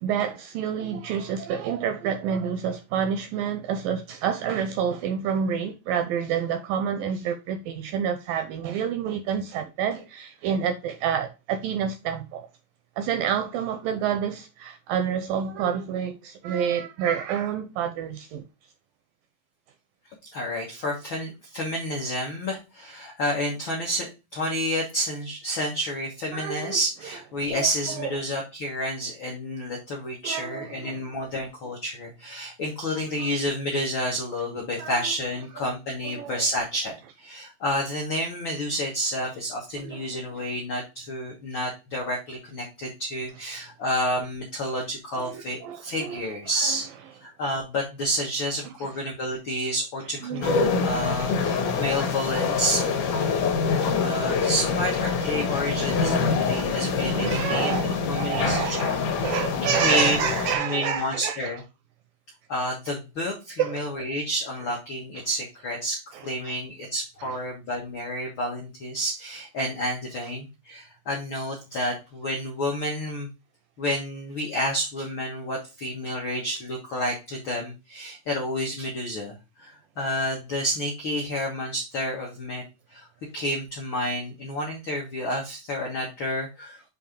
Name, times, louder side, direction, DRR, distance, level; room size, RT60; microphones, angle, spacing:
voice 1, 0.0-12.5 13.0-18.4 26.3-26.8 27.5-27.7 28.0-28.1 30.2-31.0 32.9-33.3 34.8-35.1 35.6-35.7 36.0-36.4 39.8-40.0 40.4-40.5 45.1-46.2 46.6-46.8 48.6-48.9 50.2-50.5 51.3-51.4 53.8-53.9 56.5-56.7 57.1-61.5 63.6-63.8 65.2-65.3 66.1-66.6 67.2-67.4, right 8 dB, 85° right, 2.0 m, -29 dB
voice 2, 20.2-46.9 47.2-52.9 54.0-58.8 59.8-60.3 60.6-61.6 62.5-73.3 73.8-82.6 82.9-83.1 83.3-86.9, equal, 85° left, 1.0 m, -30 dB
sound 1, 50.4-60.6, left 5 dB, 65° left, 2.3 m, -25 dB
7.6 x 2.8 x 5.0 m
omnidirectional pair, 4.5 m